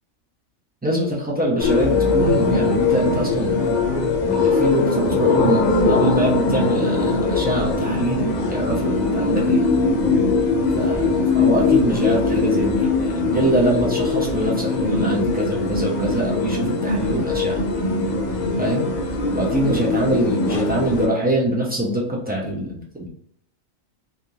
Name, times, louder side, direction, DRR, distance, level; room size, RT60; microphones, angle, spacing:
voice 1, 0.8-3.7 4.1-9.6 10.7-17.6 18.6-18.9 19.3-23.1, right 1 dB, 15° right, -4 dB, 0.4 m, -24 dB
sound 1, 1.6-21.1, left 3 dB, 60° left, 0.4 m, -21 dB
3.4 x 2.5 x 2.7 m, 0.69 s
omnidirectional pair, 1.4 m